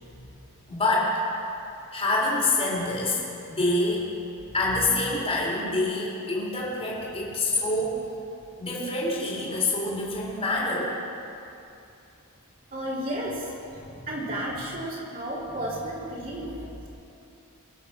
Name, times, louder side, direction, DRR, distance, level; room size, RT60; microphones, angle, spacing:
voice 1, 0.7-1.2 1.9-3.2 3.5-4.1 4.5-8.0 8.6-11.0, left 2 dB, 25° left, -4 dB, 3.9 m, -26 dB
voice 2, 12.7-13.4 13.7-16.9, right 1 dB, 40° right, -7 dB, 3.8 m, -33 dB
25.0 x 8.6 x 6.1 m, 2.7 s
head